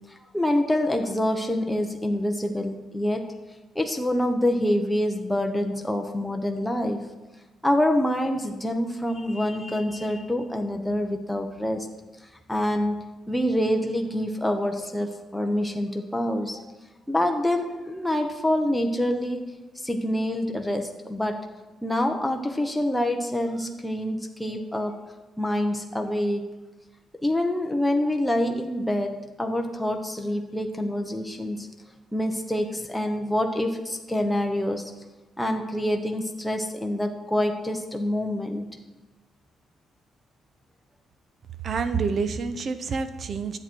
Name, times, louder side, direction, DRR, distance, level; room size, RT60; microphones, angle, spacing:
voice 1, 0.1-3.3 3.7-7.0 7.6-11.9 12.5-13.0 13.3-16.6 17.1-19.5 19.8-21.4 21.8-25.0 25.4-26.5 27.2-31.7 32.1-34.9 35.4-38.6, left 1 dB, 5° left, 3 dB, 1.0 m, -26 dB
voice 2, 41.6-43.6, right 5 dB, 50° right, 11 dB, 0.8 m, -27 dB
11.0 x 8.0 x 4.5 m, 1.1 s
cardioid pair, 90°, 0 cm